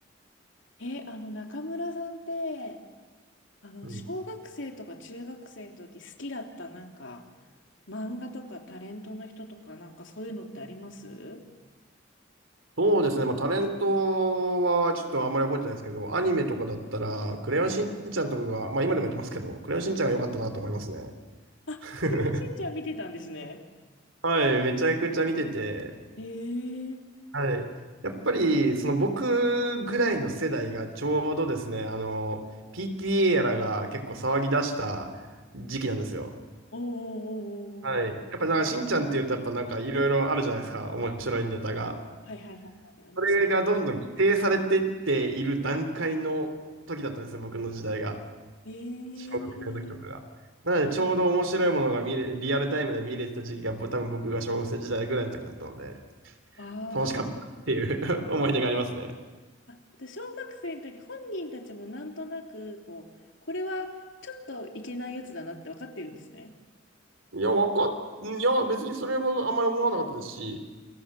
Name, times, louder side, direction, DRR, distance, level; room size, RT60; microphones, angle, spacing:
voice 1, 0.8-2.8 3.6-7.2 7.9-11.4 21.7-21.8 22.1-23.6 26.2-27.0 36.7-38.0 42.3-43.5 48.6-50.0 56.6-57.2 59.7-63.1 63.5-66.5, left 1 dB, 70° left, 3 dB, 3.2 m, -38 dB
voice 2, 12.8-21.1 21.8-22.4 24.2-25.9 27.3-27.7 28.0-32.4 32.7-35.1 35.5-36.3 37.8-41.9 43.2-46.5 46.9-48.1 49.3-50.2 50.6-55.9 56.9-57.3 57.7-59.1 67.3-67.9 68.2-70.6, right 2 dB, 80° right, 7 dB, 3.3 m, -27 dB
28.5 x 23.5 x 7.6 m, 1.3 s
head